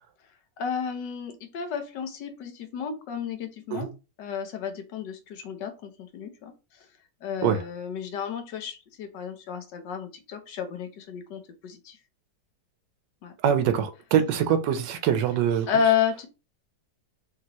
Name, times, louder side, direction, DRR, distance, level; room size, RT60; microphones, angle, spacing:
voice 1, 0.6-3.9 4.2-6.5 7.2-12.0 13.2-13.3 15.7-16.3, left 7 dB, 80° left, 1.5 m, -31 dB
voice 2, 13.4-15.7, right 9 dB, 80° right, 1.3 m, -23 dB
5.2 x 2.9 x 2.9 m
omnidirectional pair, 1.9 m